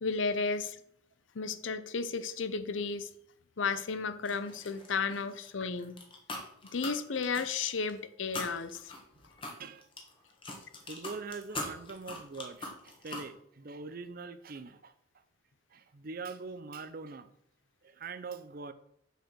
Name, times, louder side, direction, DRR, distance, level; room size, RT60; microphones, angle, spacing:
voice 1, 0.0-0.8 1.3-3.1 3.6-6.0 6.7-8.9, left 4 dB, 75° left, 11 dB, 0.6 m, -33 dB
sound 1, 4.3-5.5 5.8-7.9 8.3-13.3, left 2 dB, 25° left, 1.4 m, -41 dB
voice 2, 10.8-14.9 15.7-17.3 17.8-18.7, right 4 dB, 50° right, 12 dB, 0.6 m, -43 dB
6.8 x 4.8 x 6.2 m, 0.72 s
head